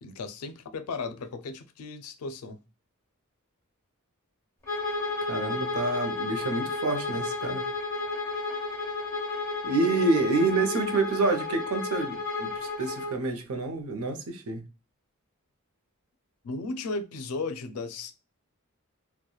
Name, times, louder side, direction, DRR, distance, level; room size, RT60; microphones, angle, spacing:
voice 1, 0.0-2.6 16.4-18.1, left 3 dB, 85° left, 0.4 m, -35 dB
Bowed string instrument, 4.6-13.2, left 3 dB, 15° left, 1.2 m, -32 dB
voice 2, 5.3-7.6 9.6-14.6, right 3 dB, 75° right, 0.6 m, -28 dB
2.9 x 2.2 x 2.3 m
head